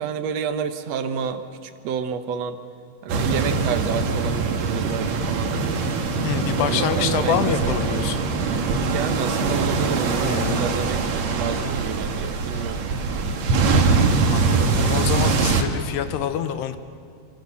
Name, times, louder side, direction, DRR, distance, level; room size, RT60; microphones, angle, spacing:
voice 1, 0.0-2.6 3.0-5.8 6.6-7.8 8.8-12.8, right 7 dB, 70° right, 8 dB, 1.5 m, -30 dB
sound 1, 3.1-15.6, right 4 dB, 50° right, 2.6 m, -22 dB
voice 2, 6.2-8.3 10.2-10.8 14.3-16.8, left 10 dB, 90° left, 10 dB, 3.3 m, -26 dB
26.5 x 26.0 x 7.2 m, 2.5 s
omnidirectional pair, 4.7 m